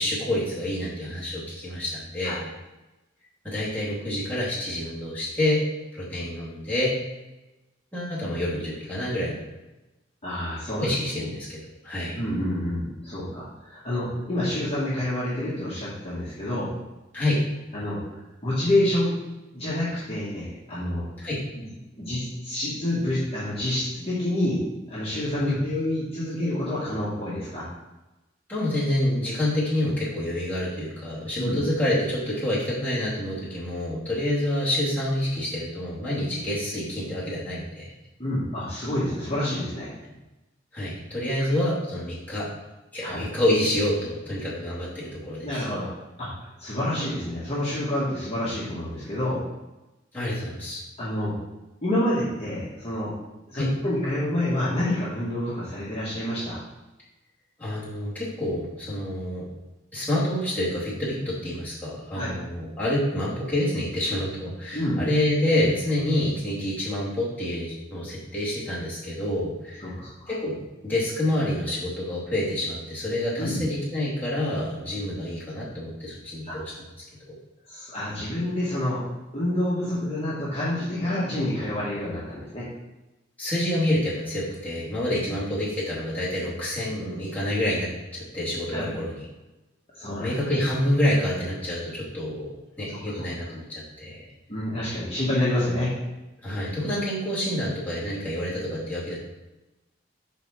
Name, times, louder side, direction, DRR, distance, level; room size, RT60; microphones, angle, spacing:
voice 1, 0.0-2.5 3.4-6.9 7.9-9.4 10.8-11.6 11.8-12.2 17.1-17.5 21.2-21.4 25.5-25.6 28.5-37.9 40.7-42.5 42.9-45.6 50.1-50.8 53.5-53.7 57.6-59.5 59.9-69.9 70.3-70.6 70.8-76.7 77.3-77.4 83.4-89.2 90.2-94.2 96.4-99.1, left 1 dB, 10° left, -9 dB, 2.6 m, -27 dB
voice 2, 10.2-10.9 11.2-11.3 12.1-16.7 17.7-18.0 18.4-19.1 19.5-21.1 21.6-21.7 22.0-24.6 24.9-27.6 31.4-31.6 38.2-39.9 43.0-43.2 45.4-45.9 46.2-46.3 46.6-49.4 51.0-51.3 51.8-53.1 53.5-56.6 62.1-62.3 64.7-65.0 69.8-70.3 73.4-73.6 76.5-76.6 77.7-79.0 79.3-82.7 88.7-89.0 89.9-90.3 93.1-93.2 94.5-95.9, left 1 dB, 30° left, -9 dB, 1.8 m, -28 dB
5.5 x 4.3 x 6.0 m, 1.0 s
head